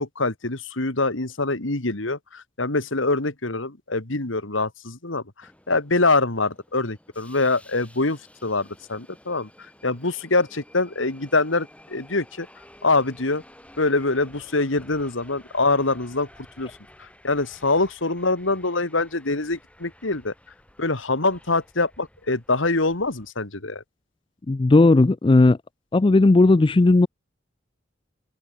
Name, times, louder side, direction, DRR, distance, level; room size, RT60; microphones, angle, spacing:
voice 1, 0.0-9.5 9.8-12.5 12.8-13.4 13.8-16.3 16.6-16.7 17.0-20.3 20.8-23.8, left 3 dB, 75° left, 2.3 m, -24 dB
Subway metro underground, 5.4-23.3, left 1 dB, 5° left, 5.9 m, -52 dB
voice 2, 24.5-25.6 25.9-27.1, left 2 dB, 25° left, 0.4 m, -15 dB
open air
head